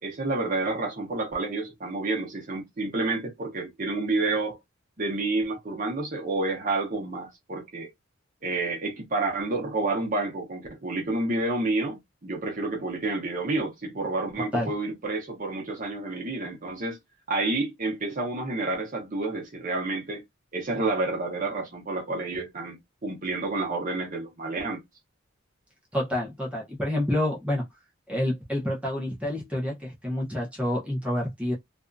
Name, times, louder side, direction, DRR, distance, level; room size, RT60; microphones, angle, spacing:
voice 1, 0.0-4.6 5.0-7.9 8.4-17.0 17.3-20.2 20.5-24.8, right 2 dB, 40° right, 0.8 m, -29 dB
voice 2, 25.9-27.6 28.1-31.5, left 1 dB, 5° right, 0.8 m, -28 dB
2.6 x 2.5 x 2.2 m
head